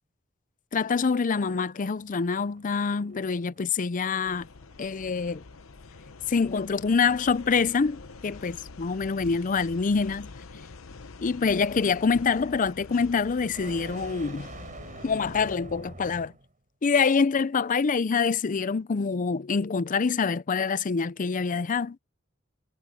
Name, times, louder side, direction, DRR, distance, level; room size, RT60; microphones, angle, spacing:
voice 1, 0.7-4.5 4.8-5.4 6.3-10.3 11.2-14.5 15.0-16.3 16.8-22.0, left 5 dB, 40° left, 0.5 m, -26 dB
sound 1, 2.0-16.5, right 2 dB, 40° right, 5.9 m, -49 dB
sound 2, 4.3-15.6, left 3 dB, 75° left, 0.8 m, -45 dB
head